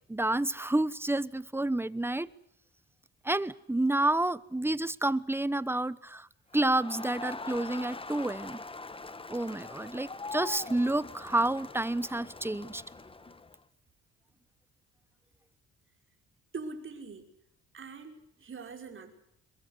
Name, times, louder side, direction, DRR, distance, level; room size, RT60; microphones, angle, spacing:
voice 1, 0.1-2.3 3.2-6.3 6.5-8.6 9.3-12.8, right 1 dB, 10° right, 1.0 m, -29 dB
Crowd, 6.5-13.6, left 3 dB, 20° left, 1.3 m, -43 dB
voice 2, 16.5-17.3 17.7-19.1, right 4 dB, 40° right, 5.7 m, -43 dB
22.5 x 21.5 x 8.3 m
cardioid pair, 90°, 30 cm